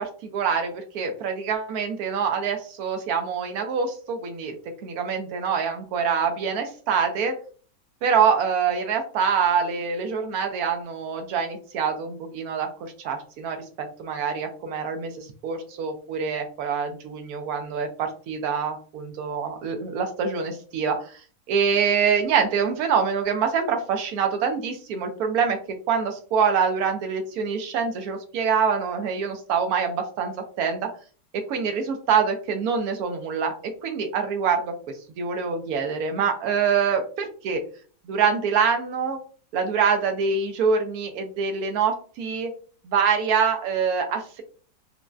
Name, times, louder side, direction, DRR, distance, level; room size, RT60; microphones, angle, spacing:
voice 1, 0.0-4.6 4.8-7.3 8.0-21.2 21.5-25.6 25.9-30.8 31.5-33.5 33.8-34.7 35.2-37.6 38.1-39.2 39.5-42.5 42.8-44.4, right 6 dB, 70° right, 5 dB, 0.9 m, -25 dB
3.8 x 2.1 x 2.3 m, 0.42 s
omnidirectional pair, 2.0 m